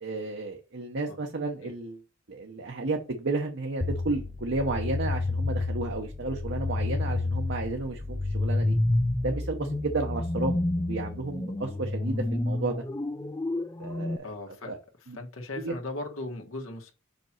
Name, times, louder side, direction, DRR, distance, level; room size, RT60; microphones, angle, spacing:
voice 1, 0.0-2.0 2.3-8.7 9.2-10.6 10.9-12.8 13.8-14.8 15.1-15.2 15.6-15.8, right 3 dB, 60° right, 1.0 m, -32 dB
sound 1, 3.8-14.2, left 2 dB, 15° left, 0.5 m, -29 dB
voice 2, 14.2-14.7 15.2-16.9, left 2 dB, 80° left, 1.6 m, -37 dB
6.0 x 5.2 x 4.4 m
head